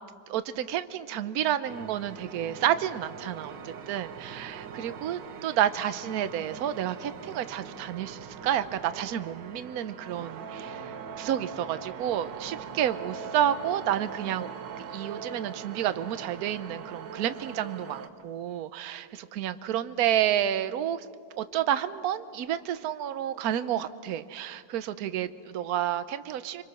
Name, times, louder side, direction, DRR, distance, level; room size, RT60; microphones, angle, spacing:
voice 1, 0.3-21.1 21.4-26.6, right 11 dB, 65° right, 13 dB, 1.2 m, -30 dB
sound 1, 1.7-18.1, right 7 dB, 85° right, 1.7 m, -41 dB
26.5 x 24.5 x 6.3 m, 2.1 s
omnidirectional pair, 1.9 m